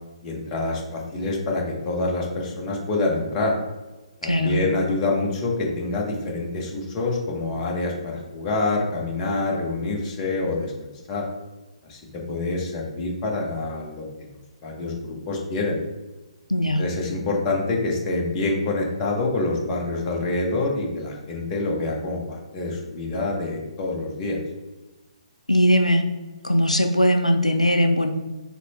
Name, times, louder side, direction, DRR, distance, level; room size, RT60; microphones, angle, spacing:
voice 1, 0.2-3.6 4.2-11.3 11.8-14.0 14.6-15.8 16.8-24.4, left 2 dB, 20° left, -2 dB, 0.9 m, -26 dB
voice 2, 4.2-4.6 16.5-16.8 25.5-26.0 26.4-28.1, equal, 85° left, 5 dB, 0.4 m, -19 dB
4.3 x 3.1 x 2.9 m, 1.1 s
figure-of-eight pair, 130°, 4 cm